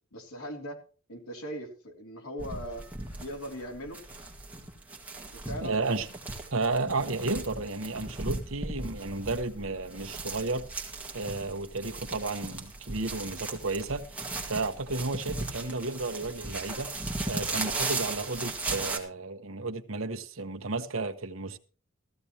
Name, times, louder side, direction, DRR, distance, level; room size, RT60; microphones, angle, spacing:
voice 1, 0.1-0.8 1.1-2.9 3.2-4.0 5.3-6.0 15.6-15.8, equal, 85° left, 3.2 m, -40 dB
sound 1, 2.4-19.0, right 3 dB, 5° right, 1.9 m, -37 dB
voice 2, 5.6-6.1 6.5-10.7 11.1-14.0 14.5-16.9 17.3-21.6, right 3 dB, 70° right, 1.2 m, -32 dB
15.5 x 15.0 x 3.0 m
head